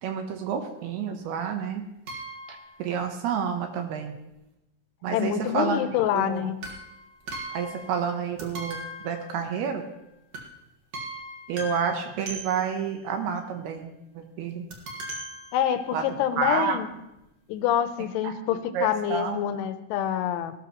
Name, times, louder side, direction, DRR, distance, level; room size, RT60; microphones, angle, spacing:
voice 1, 0.0-1.8 2.5-4.2 5.0-6.6 7.5-8.8 9.0-9.9 11.5-14.7 15.9-16.1 16.4-16.8 18.2-18.4 18.7-19.4, right 7 dB, 75° right, 5 dB, 2.4 m, -29 dB
sound 1, 2.1-2.8 6.6-8.1 8.4-9.9 10.3-10.6 10.9-12.9 14.7-16.2 16.9-17.0 17.2-17.3, right 1 dB, 60° right, 1.7 m, -40 dB
voice 2, 5.1-6.6 15.5-16.9 17.5-20.5, left 10 dB, 80° left, 10 dB, 3.1 m, -26 dB
18.5 x 12.5 x 3.0 m, 0.91 s
omnidirectional pair, 5.7 m